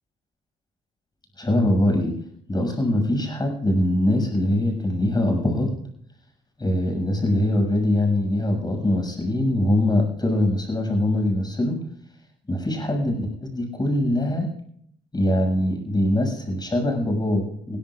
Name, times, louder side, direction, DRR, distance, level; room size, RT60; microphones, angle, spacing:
voice 1, 1.4-2.1 2.5-5.7 6.6-11.8 12.5-14.5 15.1-17.8, left 1 dB, 20° left, 4 dB, 6.7 m, -22 dB
21.5 x 16.5 x 2.5 m, 0.68 s
cardioid pair, 90°, 20 cm